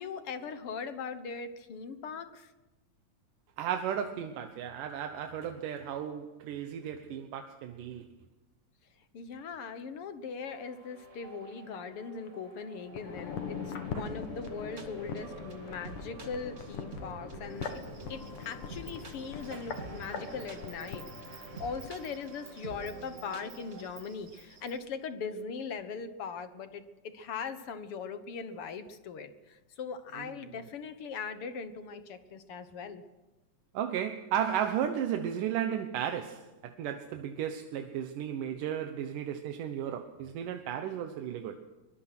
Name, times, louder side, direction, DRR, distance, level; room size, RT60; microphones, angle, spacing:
voice 1, 0.0-2.5 9.1-17.8 18.1-33.0, left 5 dB, 55° left, 10 dB, 1.8 m, -40 dB
voice 2, 3.6-8.1 13.9-14.0 19.5-19.6 33.7-41.6, right 9 dB, 90° right, 6 dB, 2.7 m, -34 dB
sound 1, 10.5-23.9, right 3 dB, 30° right, 1.8 m, -48 dB
sound 2, 12.9-22.0 22.2-22.3, left 6 dB, 75° left, 3.3 m, -42 dB
Insect, 17.4-24.8, right 6 dB, 65° right, 3.7 m, -55 dB
23.5 x 22.0 x 6.0 m, 1.1 s
omnidirectional pair, 3.6 m